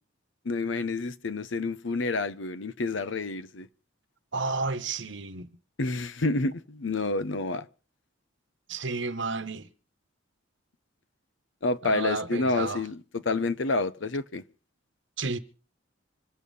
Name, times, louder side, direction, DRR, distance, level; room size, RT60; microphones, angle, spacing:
voice 1, 0.4-3.7 5.8-7.7 11.6-14.4, left 3 dB, 65° left, 0.8 m, -29 dB
voice 2, 4.3-5.5 8.7-9.7 11.8-12.8 15.2-15.4, right 3 dB, 65° right, 1.2 m, -31 dB
25.0 x 8.5 x 5.3 m
head